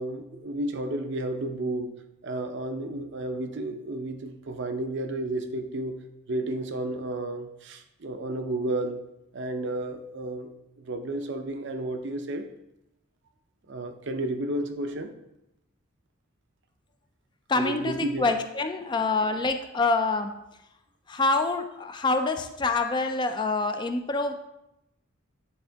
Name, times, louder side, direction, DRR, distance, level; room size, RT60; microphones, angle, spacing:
voice 1, 0.0-2.0 2.2-6.0 6.3-9.0 9.3-10.5 10.8-12.4 13.7-15.1 17.5-18.3 18.8-19.0, right 1 dB, 60° right, 7 dB, 0.6 m, -32 dB
voice 2, 17.5-20.4 21.1-24.3, left 3 dB, 20° left, 7 dB, 0.3 m, -26 dB
9.5 x 3.6 x 3.4 m, 0.87 s
head